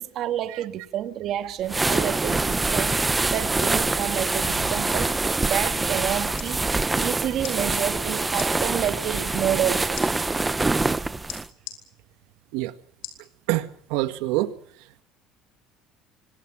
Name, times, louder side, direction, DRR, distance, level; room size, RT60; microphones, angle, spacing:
voice 1, 0.0-2.9 3.3-5.2 5.4-6.6 6.9-10.0, right 11 dB, 50° right, 1.8 m, -29 dB
sound 1, 1.6-11.5, right 3 dB, 10° right, 1.0 m, -25 dB
sound 2, 6.3-6.5 7.4-7.6 8.3-8.5 10.0-10.1 11.3-11.8 13.0-13.2 13.8-13.9, left 13 dB, 75° left, 5.4 m, -37 dB
voice 2, 13.5-14.5, right 17 dB, 80° right, 1.8 m, -26 dB
27.5 x 25.0 x 6.3 m
cardioid pair, 145°, 0 cm